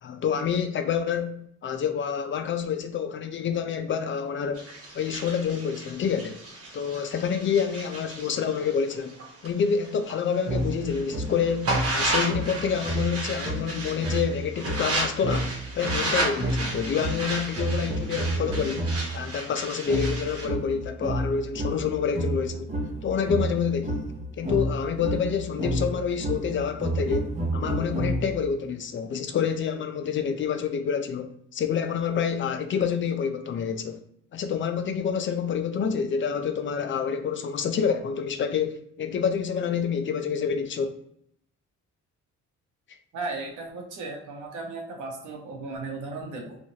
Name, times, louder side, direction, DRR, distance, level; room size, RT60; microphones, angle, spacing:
voice 1, 0.0-4.7 4.9-6.4 6.7-9.2 9.4-18.9 19.1-22.8 23.0-24.1 24.4-34.0 34.3-41.0, left 7 dB, 40° left, 0.4 m, -28 dB
sound 1, 4.5-10.2 10.6-20.5, right 2 dB, 50° right, 1.1 m, -33 dB
sound 2, 10.5-19.2 19.9-28.5, right 1 dB, 25° right, 0.7 m, -30 dB
voice 2, 43.1-46.6, right 3 dB, 80° right, 0.9 m, -35 dB
3.0 x 2.4 x 2.7 m
cardioid pair, 90°, 30 cm